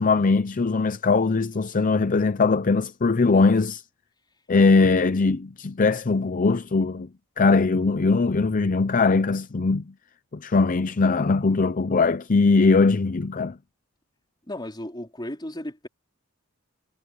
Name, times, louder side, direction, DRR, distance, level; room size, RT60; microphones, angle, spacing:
voice 1, 0.0-3.8 4.5-7.1 7.4-9.8 10.3-13.6, left 4 dB, 40° left, 0.6 m, -21 dB
voice 2, 14.5-15.9, left 1 dB, 20° left, 4.2 m, -34 dB
head